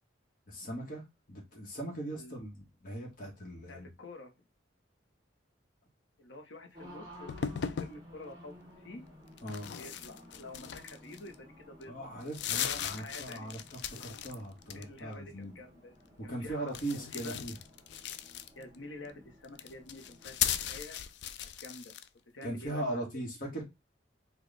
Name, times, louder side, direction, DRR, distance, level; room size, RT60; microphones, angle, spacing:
voice 1, 0.5-1.0 1.3-3.9 9.4-9.8 11.9-15.6 16.2-17.5 22.4-23.6, right 1 dB, 45° left, 1.1 m, -39 dB
voice 2, 3.7-4.3 6.2-8.6 8.8-9.0 9.7-11.9 12.5-13.5 14.7-16.0 16.2-17.4 18.6-21.0 21.4-21.9 22.3-23.2, left 2 dB, 85° left, 0.9 m, -48 dB
Race car auto racing, 6.7-20.8, equal, 20° right, 1.0 m, -55 dB
sound 1, 7.3-8.0 9.4-11.3 11.8-11.9 12.2-14.3 14.6-15.1 16.7-18.8 19.4-22.1, left 9 dB, 60° left, 0.3 m, -37 dB
4.0 x 2.3 x 3.2 m
head